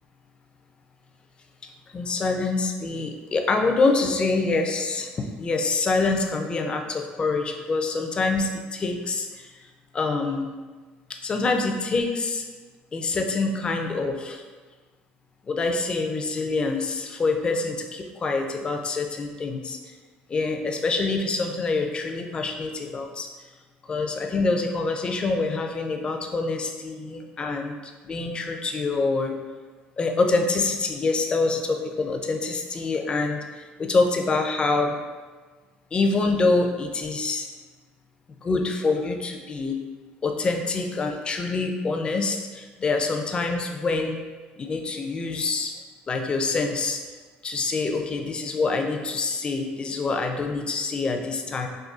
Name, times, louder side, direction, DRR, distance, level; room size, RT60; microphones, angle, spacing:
voice 1, 1.9-9.5 9.9-10.5 11.1-12.5 12.9-14.4 15.5-19.9 20.3-23.3 23.9-29.3 30.0-35.0 35.9-37.5 38.4-39.8 40.2-44.2 44.6-45.8 46.1-47.0 47.4-51.7, left 3 dB, 25° left, 4 dB, 0.3 m, -26 dB
3.6 x 2.3 x 2.4 m, 1.4 s
cardioid pair, 110°, 4 cm